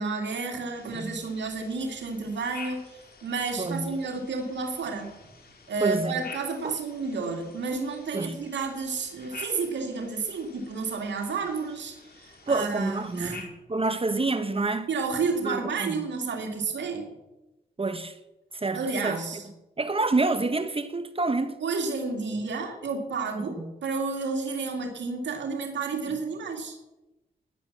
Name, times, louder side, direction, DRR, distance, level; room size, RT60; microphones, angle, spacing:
voice 1, 0.0-5.1 5.7-13.5 14.9-17.1 18.7-19.5 21.6-26.8, right 4 dB, 85° right, 2.4 m, -31 dB
sound 1, 0.7-13.4, left 4 dB, 60° left, 3.9 m, -48 dB
voice 2, 5.8-6.2 6.6-6.7 8.1-8.3 12.5-14.9 15.4-16.0 17.8-18.1 18.6-19.2 19.8-21.5 23.4-23.5, right 3 dB, 30° right, 1.2 m, -27 dB
13.5 x 10.5 x 7.3 m
cardioid pair, 55°, 18 cm